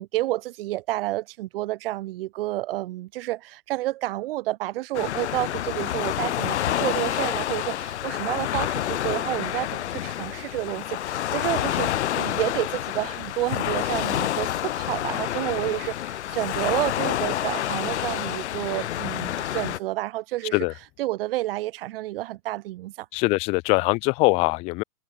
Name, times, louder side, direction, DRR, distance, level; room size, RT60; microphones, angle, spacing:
voice 1, 0.0-11.9 12.1-20.7 21.0-23.1, right 16 dB, 40° right, 5.4 m, -30 dB
Waves surf, 4.9-19.8, left 12 dB, 55° left, 6.9 m, -28 dB
voice 2, 23.1-24.8, left 26 dB, 15° left, 0.7 m, -22 dB
hypercardioid pair, 150°, 41 cm